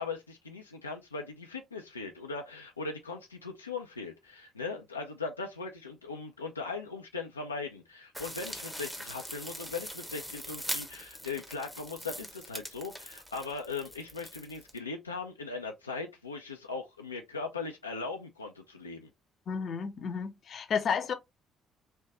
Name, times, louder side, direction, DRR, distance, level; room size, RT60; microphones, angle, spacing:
voice 1, 0.0-19.1, left 4 dB, 85° left, 0.4 m, -39 dB
sound 1, 8.1-14.8, equal, ahead, 1.0 m, -42 dB
voice 2, 19.5-21.1, left 6 dB, 50° left, 0.7 m, -32 dB
3.3 x 2.6 x 3.2 m
figure-of-eight pair, 50°, 0 cm